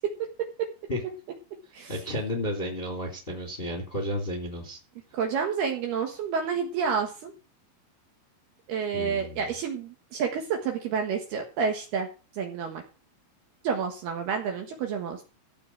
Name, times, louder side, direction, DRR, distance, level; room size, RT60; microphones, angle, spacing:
voice 1, 1.9-4.8 8.9-9.5, left 1 dB, 15° left, 1 dB, 2.3 m, -32 dB
voice 2, 5.1-7.3 8.7-12.1 12.4-12.8 13.6-15.2, right 6 dB, 65° right, 3 dB, 3.0 m, -29 dB
15.0 x 5.4 x 7.4 m, 0.35 s
omnidirectional pair, 5.8 m